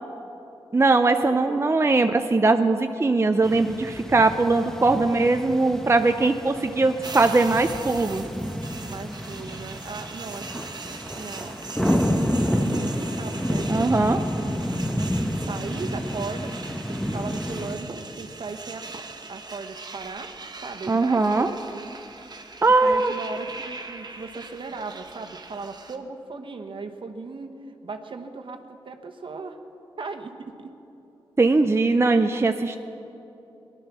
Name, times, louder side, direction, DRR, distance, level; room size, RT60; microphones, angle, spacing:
voice 1, 0.7-8.2 13.7-14.2 20.9-21.5 22.6-23.1 31.4-32.8, right 3 dB, 25° right, 7 dB, 0.6 m, -20 dB
sound 1, 3.4-17.8, equal, 5° left, 1.1 m, -29 dB
sound 2, 7.0-26.0, right 4 dB, 45° right, 1.1 m, -41 dB
voice 2, 8.8-14.7 15.3-20.3 20.6-22.0 22.8-27.5 27.8-29.6 30.0-30.7, right 4 dB, 60° right, 5 dB, 1.2 m, -37 dB
19.5 x 11.5 x 6.1 m, 3.0 s
cardioid pair, 70°, 10 cm